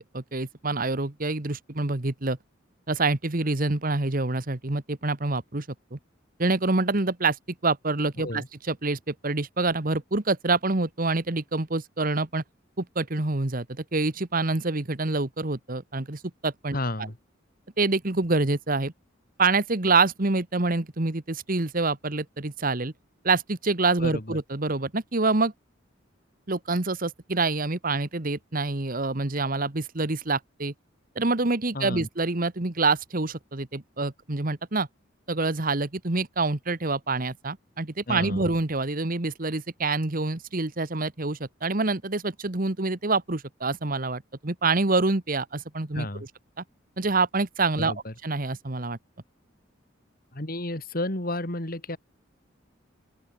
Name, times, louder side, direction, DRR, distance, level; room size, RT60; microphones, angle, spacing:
voice 1, 0.0-2.4 2.9-5.6 5.9-6.0 6.4-7.4 7.6-12.4 12.8-16.8 17.8-18.9 19.4-22.9 23.2-25.5 26.5-30.7 31.1-34.9 35.3-46.1 47.0-47.9 48.2-49.0, right 3 dB, 45° right, 1.4 m, -26 dB
voice 2, 8.2-8.5 16.7-17.2 24.0-24.4 31.7-32.1 38.1-38.5 45.9-46.2 47.8-48.1 50.3-52.0, left 1 dB, 45° left, 3.1 m, -32 dB
open air
head